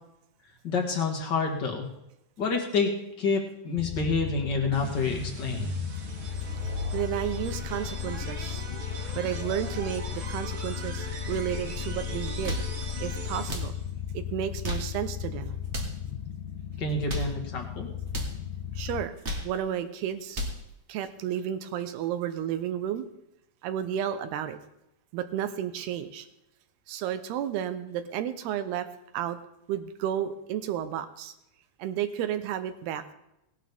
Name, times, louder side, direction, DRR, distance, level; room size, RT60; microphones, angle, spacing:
voice 1, 0.6-1.9 2.4-5.7 16.8-17.9, left 4 dB, 45° left, 2 dB, 1.5 m, -28 dB
sound 1, 3.8-19.1, left 9 dB, 80° left, 2.4 m, -36 dB
sound 2, 4.7-13.9, equal, 45° right, 1.6 m, -38 dB
voice 2, 6.9-8.6 9.2-12.6 13.0-13.7 14.1-15.6 18.7-19.1 19.4-20.4 20.9-23.0 23.6-24.6 25.1-26.3 26.9-28.9 29.1-29.4 29.7-31.3 31.8-33.1, right 10 dB, 85° right, 10 dB, 2.9 m, -32 dB
sound 3, 12.2-12.8 13.4-13.8 14.5-15.0 15.6-16.0 16.9-17.4 18.1-18.4 19.0-19.6 20.1-20.6, equal, 70° right, 0.6 m, -34 dB
18.0 x 11.5 x 3.5 m, 0.85 s
omnidirectional pair, 4.5 m